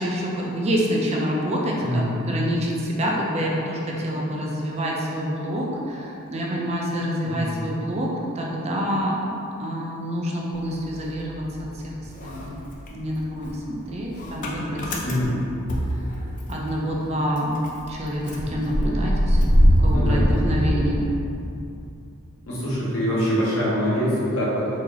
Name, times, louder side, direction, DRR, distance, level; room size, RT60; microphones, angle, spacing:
voice 1, 0.0-11.9 12.2-12.5 12.9-15.3 16.5-17.6 17.9-21.1, equal, 30° right, -3 dB, 0.4 m, -27 dB
Motor vehicle (road) / Engine starting, 10.5-11.8 12.0-16.7 17.0-17.1 17.4-21.5, equal, 35° left, 0.4 m, -23 dB
voice 2, 15.0-15.4 19.9-20.3 22.5-24.7, equal, 75° left, -8 dB, 1.2 m, -24 dB
3.1 x 2.8 x 3.7 m, 2.8 s
head